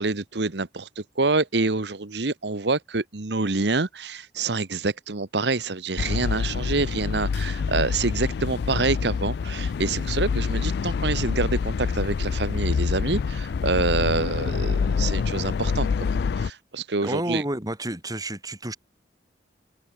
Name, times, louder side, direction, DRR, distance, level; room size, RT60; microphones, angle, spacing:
voice 1, 0.0-17.4, right 3 dB, 70° right, 1.2 m, -27 dB
sound 1, 6.0-16.5, left 5 dB, 60° left, 0.3 m, -26 dB
voice 2, 17.0-18.8, right 1 dB, 20° right, 7.4 m, -30 dB
head